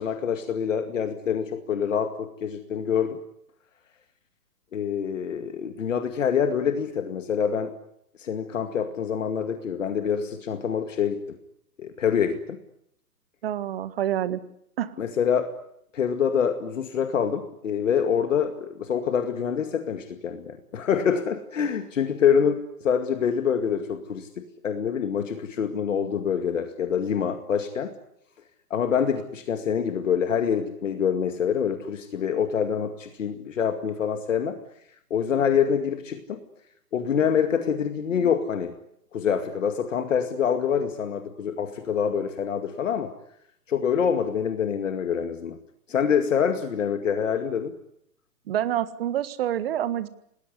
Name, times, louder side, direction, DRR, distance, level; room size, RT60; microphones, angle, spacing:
voice 1, 0.0-3.2 4.7-7.7 8.2-11.2 11.8-12.6 15.0-15.5 15.9-27.9 28.7-34.6 35.1-36.4 36.9-38.7 39.1-43.1 43.7-45.6 45.9-47.7, left 7 dB, 50° left, 7 dB, 2.2 m, -26 dB
voice 2, 13.4-14.4 14.8-14.9 48.5-50.1, right 11 dB, 35° right, 13 dB, 1.7 m, -27 dB
27.5 x 19.5 x 9.9 m, 0.78 s
figure-of-eight pair, 125°, 47 cm